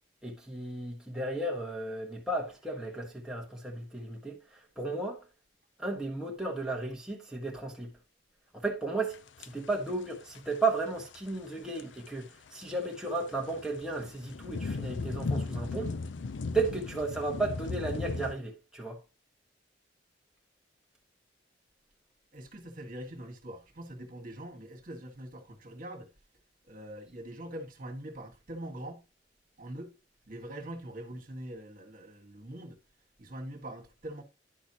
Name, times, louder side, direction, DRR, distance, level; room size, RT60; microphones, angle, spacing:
voice 1, 0.2-5.2 5.8-7.9 8.5-15.9 16.5-19.0, right 3 dB, 5° right, 1.4 m, -34 dB
sound 1, 9.1-9.9 10.3-10.6 11.0-12.0 12.5-18.3, left 3 dB, 85° left, 0.5 m, -36 dB
voice 2, 22.3-26.1 26.6-29.0 29.6-29.9 30.3-32.8 33.2-34.2, right 1 dB, 50° right, 1.7 m, -43 dB
10.5 x 6.2 x 2.9 m
head